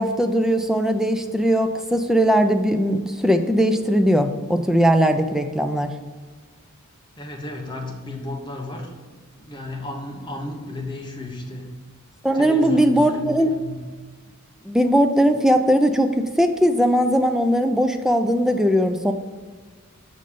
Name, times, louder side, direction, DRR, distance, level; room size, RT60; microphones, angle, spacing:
voice 1, 0.0-5.9 12.2-13.5 14.7-19.1, equal, ahead, 7 dB, 0.4 m, -19 dB
voice 2, 7.2-11.7 12.3-13.8, left 2 dB, 20° left, 1 dB, 1.1 m, -33 dB
6.4 x 5.3 x 6.8 m, 1.4 s
head